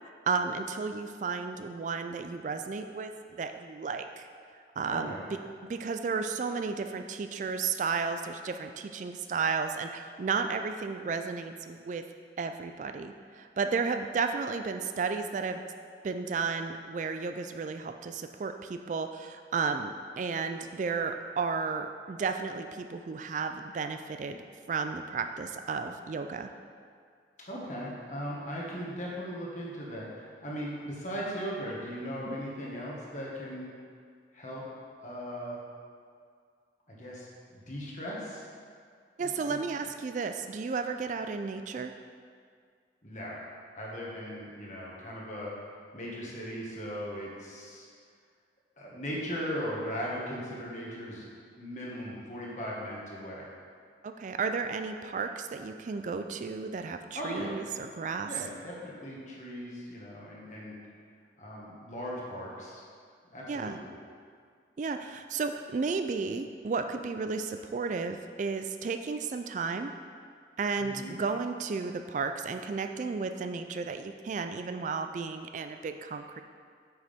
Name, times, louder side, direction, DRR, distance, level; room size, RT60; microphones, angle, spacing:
voice 1, 0.3-4.3 4.8-5.1 5.6-12.0 12.4-15.6 16.0-24.4 24.7-26.5 32.3-32.4 39.2-41.9 54.0-58.3 63.5-63.8 64.8-69.9 70.6-76.4, right 5 dB, 45° right, 7 dB, 0.3 m, -33 dB
voice 2, 4.9-5.2 27.5-33.7 34.3-34.7 35.0-35.6 36.9-37.3 37.5-38.5 39.2-39.6 43.0-43.4 43.7-45.5 45.9-47.9 48.8-51.3 51.6-53.5 57.1-57.6 58.3-60.7 61.4-62.8 63.3-63.9 70.8-71.2, equal, 45° left, -4 dB, 1.7 m, -38 dB
9.1 x 6.5 x 3.6 m, 2.1 s
head